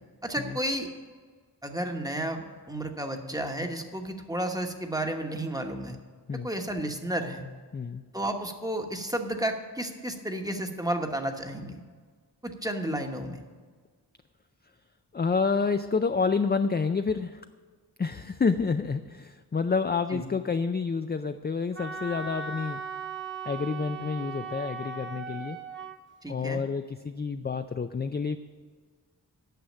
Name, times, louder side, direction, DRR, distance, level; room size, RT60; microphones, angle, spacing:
voice 1, 0.2-0.9 1.6-6.0 6.3-7.4 8.1-11.8 12.4-13.4 20.1-20.2 26.2-26.6, right 1 dB, 10° right, 4 dB, 1.1 m, -32 dB
voice 2, 15.1-17.4 18.0-22.8 23.5-25.6 26.3-28.4, left 5 dB, 25° left, 8 dB, 0.4 m, -28 dB
Wind instrument woodwind instrument, 21.8-26.0, right 5 dB, 30° right, 0.8 m, -38 dB
9.4 x 6.2 x 8.5 m, 1.5 s
wide cardioid pair, 60°, 41 cm